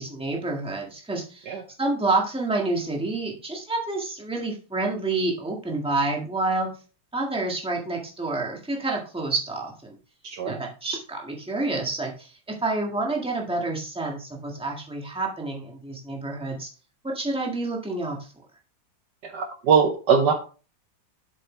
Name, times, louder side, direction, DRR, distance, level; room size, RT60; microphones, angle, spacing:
voice 1, 0.0-6.7 7.1-9.9 10.4-12.3 12.6-16.7 17.0-18.3, right 2 dB, 5° right, -1 dB, 1.5 m, -28 dB
voice 2, 10.2-10.6 19.2-20.3, right 6 dB, 65° right, 5 dB, 1.3 m, -21 dB
7.8 x 6.8 x 3.3 m, 0.36 s
omnidirectional pair, 2.2 m